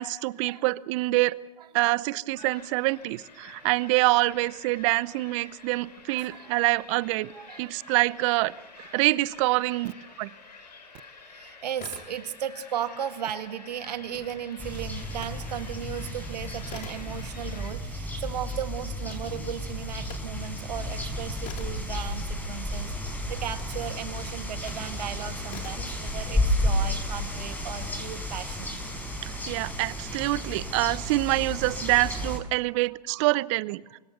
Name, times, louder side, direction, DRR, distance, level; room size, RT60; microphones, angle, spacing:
voice 1, 0.0-1.4 1.7-7.3 7.6-8.5 8.9-9.9 10.2-10.3 29.2-34.0, right 21 dB, 45° right, 20 dB, 0.7 m, -26 dB
sound 1, 2.4-17.7, left 4 dB, 80° left, 5.6 m, -49 dB
voice 2, 6.1-6.7 7.3-8.1 8.8-9.0 11.3-28.8 33.9-34.0, right 9 dB, 70° right, 9 dB, 2.0 m, -36 dB
sound 2, 11.6-12.6 12.9-15.4 15.8-22.8 23.4-24.9 25.5-26.0, left 6 dB, 35° left, 3.5 m, -48 dB
sound 3, 14.6-32.4, left 1 dB, 10° left, 5.1 m, -32 dB
24.5 x 21.5 x 6.8 m, 1.1 s
hypercardioid pair, 110°, 21 cm